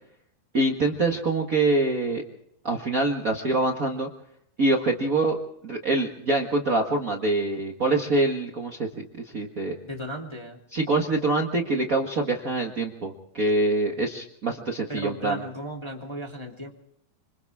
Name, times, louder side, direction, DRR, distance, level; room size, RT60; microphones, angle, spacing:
voice 1, 0.5-2.2 2.6-4.1 4.6-5.4 5.6-9.0 9.3-9.8 10.7-15.4, right 2 dB, 55° right, 1 dB, 0.9 m, -25 dB
voice 2, 9.8-10.6 14.9-16.7, equal, 10° left, 0 dB, 2.1 m, -35 dB
27.0 x 27.0 x 3.7 m, 0.73 s
omnidirectional pair, 4.5 m